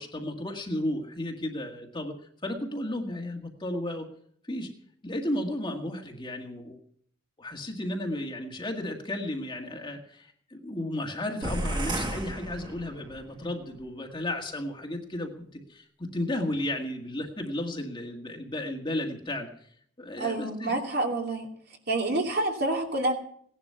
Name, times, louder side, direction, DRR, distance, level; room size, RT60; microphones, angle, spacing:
voice 1, 0.0-2.1 2.4-4.1 4.5-4.7 5.0-6.8 7.4-19.5 20.0-20.7, left 1 dB, 20° left, 2 dB, 1.9 m, -33 dB
sound 1, 11.4-13.3, right 1 dB, 20° right, 1.4 m, -32 dB
voice 2, 20.2-21.5 21.9-23.1, right 2 dB, 50° right, 1 dB, 2.8 m, -28 dB
18.0 x 11.0 x 5.7 m, 0.62 s
head